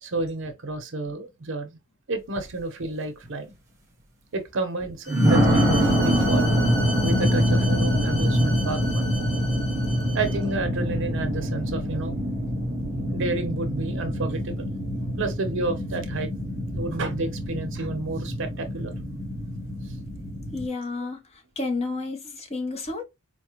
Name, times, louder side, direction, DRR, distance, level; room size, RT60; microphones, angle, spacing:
voice 1, 0.0-1.8 2.1-3.5 4.3-6.6 7.0-9.1 10.1-12.2 13.1-14.7 15.2-16.3 16.7-18.9 19.9-20.0, right 3 dB, 55° right, 0.7 m, -30 dB
sound 1, 2.4-2.6 3.2-3.3 5.1-20.7, equal, 15° right, 0.9 m, -25 dB
Bowed string instrument, 5.0-10.5, equal, 50° left, 2.3 m, -36 dB
voice 2, 20.5-23.0, left 3 dB, 30° left, 0.7 m, -31 dB
4.7 x 2.1 x 2.9 m
head